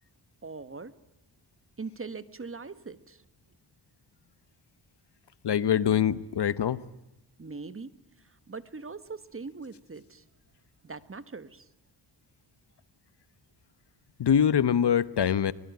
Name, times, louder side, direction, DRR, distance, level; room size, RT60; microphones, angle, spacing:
voice 1, 0.4-0.9 1.8-3.2 7.4-7.9 8.2-10.2 10.8-11.7, right 4 dB, 30° right, 1.4 m, -41 dB
voice 2, 5.4-6.8 14.2-15.5, left 8 dB, 65° left, 1.1 m, -24 dB
24.0 x 21.0 x 9.4 m
wide cardioid pair, 95°, 43 cm